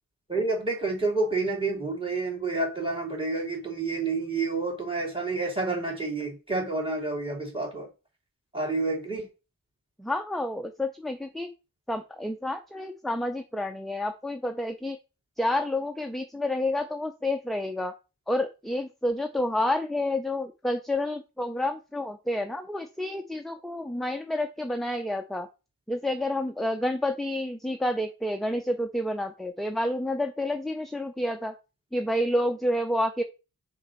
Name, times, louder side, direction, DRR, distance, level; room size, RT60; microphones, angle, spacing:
voice 1, 0.3-7.9 8.5-9.3, right 3 dB, 15° right, 2.8 m, -29 dB
voice 2, 10.0-11.5 11.9-15.0 15.4-17.9 18.3-25.5 25.9-31.5 31.9-33.2, left 1 dB, ahead, 0.5 m, -29 dB
6.6 x 5.2 x 4.0 m
wide cardioid pair, 120°, 36 cm